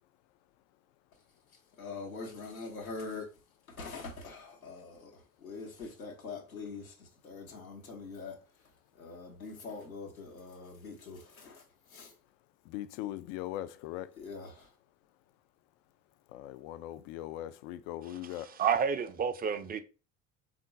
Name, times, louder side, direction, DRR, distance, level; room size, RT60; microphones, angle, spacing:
voice 1, 1.5-3.3 3.7-12.1 14.2-14.8, left 4 dB, 85° left, 1.0 m, -44 dB
voice 2, 12.7-14.1 16.3-18.6, left 14 dB, 60° left, 0.5 m, -40 dB
voice 3, 18.6-19.8, right 7 dB, 20° right, 0.5 m, -29 dB
3.6 x 2.5 x 3.9 m
figure-of-eight pair, 55°, 41 cm